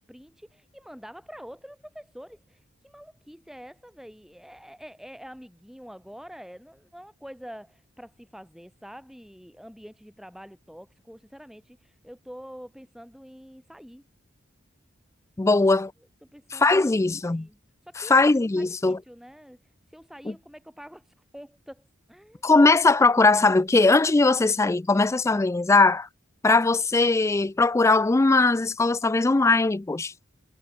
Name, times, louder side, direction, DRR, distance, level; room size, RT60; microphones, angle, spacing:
voice 1, 0.1-14.0 16.3-16.8 17.2-18.2 18.6-19.6 19.9-22.4, equal, ahead, 3.9 m, -46 dB
voice 2, 15.4-15.9 16.5-17.5 18.1-19.0 22.4-26.1 26.4-30.1, left 3 dB, 15° left, 0.3 m, -20 dB
head